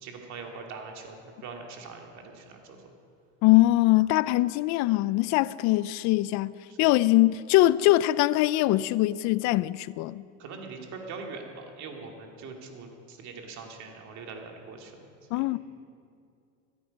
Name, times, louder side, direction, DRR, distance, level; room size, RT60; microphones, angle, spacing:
voice 1, 0.0-1.2 1.4-2.8 10.4-15.0 15.3-15.5, right 4 dB, 45° right, 2.3 m, -42 dB
voice 2, 3.4-6.5 6.8-10.2 15.3-15.6, left 17 dB, 50° left, 0.5 m, -22 dB
14.5 x 13.5 x 5.3 m
supercardioid pair, 115°, 37 cm